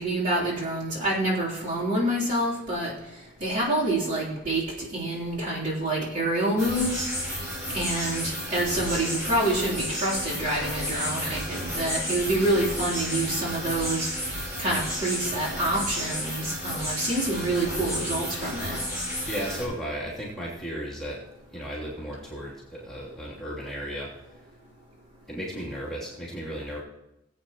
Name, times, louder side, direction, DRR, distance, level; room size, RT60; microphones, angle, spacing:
voice 1, 0.0-2.9 3.4-7.1 7.7-14.1 14.6-18.8, right 1 dB, 40° right, -7 dB, 3.6 m, -27 dB
sound 1, 6.6-19.6, equal, 15° right, 5.0 m, -32 dB
voice 2, 19.3-21.2 21.5-24.3 25.3-26.8, equal, ahead, -9 dB, 3.1 m, -35 dB
20.0 x 8.5 x 3.1 m, 0.90 s
head